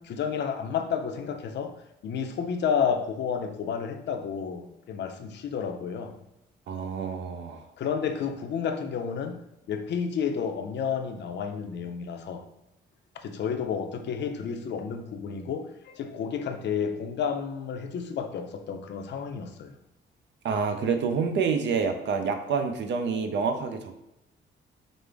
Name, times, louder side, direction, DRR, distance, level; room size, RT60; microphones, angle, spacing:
voice 1, 0.0-1.7 2.0-6.1 7.8-9.4 9.7-12.4 13.2-19.7, left 7 dB, 60° left, 6 dB, 0.5 m, -31 dB
voice 2, 6.7-7.6 20.4-24.0, right 5 dB, 65° right, 7 dB, 0.6 m, -28 dB
5.1 x 2.1 x 3.3 m, 0.88 s
cardioid pair, 90°, 20 cm